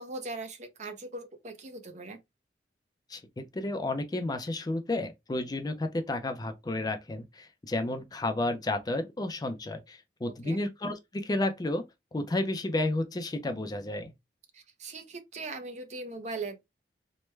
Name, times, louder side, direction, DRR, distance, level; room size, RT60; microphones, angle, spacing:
voice 1, 0.0-2.2 10.4-10.6 14.5-16.6, right 3 dB, 40° right, 0.6 m, -40 dB
voice 2, 3.1-11.8 12.1-14.1, left 2 dB, 20° left, 0.4 m, -32 dB
3.1 x 2.2 x 3.1 m
head